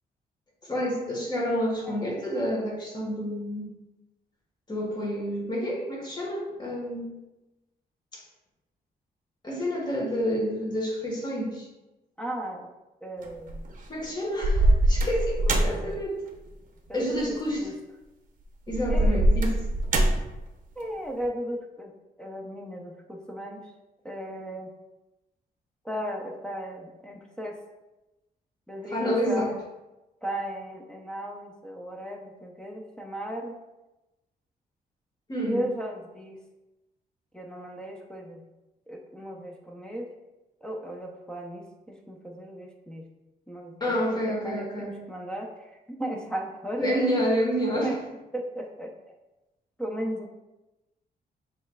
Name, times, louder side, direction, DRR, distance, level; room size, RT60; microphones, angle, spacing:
voice 1, 0.6-3.7 4.7-7.1 8.1-8.2 9.4-11.7 13.9-16.2 16.9-17.7 18.7-19.5 28.9-29.4 35.3-35.6 43.8-45.0 46.8-47.9, equal, 25° left, -2 dB, 1.4 m, -29 dB
voice 2, 12.2-12.7 13.0-13.6 15.6-16.0 16.9-17.3 17.6-17.7 18.9-19.2 20.8-21.9 22.2-23.7 24.0-24.7 25.8-27.6 28.7-29.6 30.2-33.6 35.4-36.4 37.3-38.4 38.9-40.1 40.6-43.0 43.5-46.9 47.8-47.9 48.3-48.9 49.8-50.3, equal, 5° left, -1 dB, 0.6 m, -36 dB
sound 1, 13.2-13.7 14.4-15.9 17.2-17.4 18.7-20.4, right 1 dB, 50° right, 0.7 m, -22 dB
7.0 x 3.2 x 2.3 m, 1.0 s
cardioid pair, 110°, 17 cm